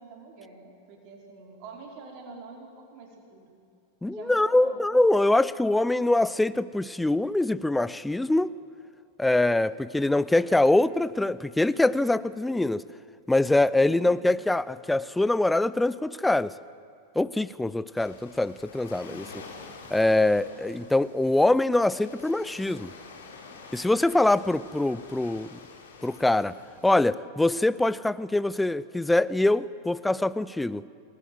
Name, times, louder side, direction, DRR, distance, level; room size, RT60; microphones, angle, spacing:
voice 1, 0.0-3.5 4.1-4.8 13.8-14.2 19.0-19.5 24.4-24.6, right 4 dB, 45° right, 1 dB, 4.7 m, -46 dB
voice 2, 4.0-8.5 9.2-12.8 13.3-16.5 17.2-19.3 19.9-22.9 23.7-25.6 26.0-26.6 26.8-30.8, left 2 dB, 5° left, 17 dB, 0.6 m, -24 dB
Waves surf, 18.0-27.1, left 4 dB, 65° left, 3.8 m, -47 dB
28.0 x 20.0 x 7.8 m, 2.5 s
figure-of-eight pair, 90°, 0 cm